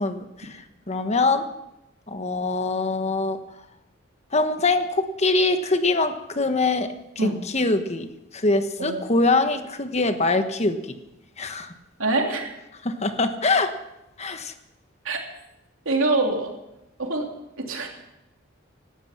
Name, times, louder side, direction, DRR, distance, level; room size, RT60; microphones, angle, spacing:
voice 1, 0.0-1.4 2.1-3.4 4.3-6.9 7.2-8.1 8.3-10.8 11.4-11.7 12.8-13.7 14.2-14.5, left 3 dB, 35° left, 8 dB, 1.2 m, -23 dB
voice 2, 12.0-12.5 15.0-15.2 15.8-16.5 17.0-17.3 17.6-17.9, right 2 dB, 80° right, 1 dB, 3.0 m, -24 dB
17.0 x 12.0 x 5.9 m, 0.91 s
head